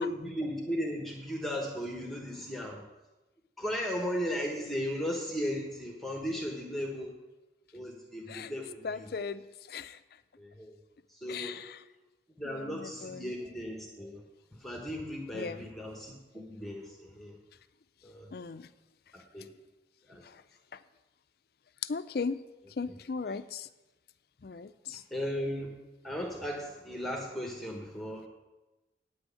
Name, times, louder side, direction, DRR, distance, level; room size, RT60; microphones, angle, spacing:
voice 1, 0.0-2.8 3.6-7.2 7.7-9.1 10.4-10.8 11.1-11.6 12.4-14.2 14.5-17.4 18.0-18.3 19.1-19.5 20.1-20.2 22.9-23.0 24.9-25.8 26.0-28.3, equal, ahead, 0 dB, 1.1 m, -36 dB
voice 2, 8.8-9.4 9.7-10.0 11.3-11.6 12.5-13.3 15.3-15.7 18.3-18.7 21.8-22.4 22.8-23.7 24.4-25.0, left 5 dB, 55° left, 14 dB, 0.4 m, -37 dB
9.0 x 6.2 x 8.4 m, 1.1 s
head